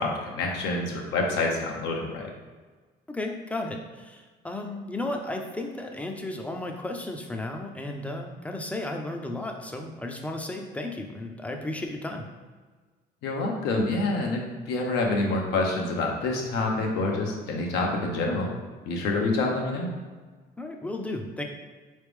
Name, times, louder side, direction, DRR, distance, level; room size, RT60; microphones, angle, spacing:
voice 1, 0.0-2.3 13.2-18.5 18.9-19.9, left 2 dB, 85° left, 0 dB, 0.9 m, -27 dB
voice 2, 3.1-12.3 20.6-21.4, left 2 dB, 10° left, 3 dB, 0.5 m, -34 dB
3.9 x 3.2 x 3.5 m, 1.4 s
cardioid pair, 110°, 17 cm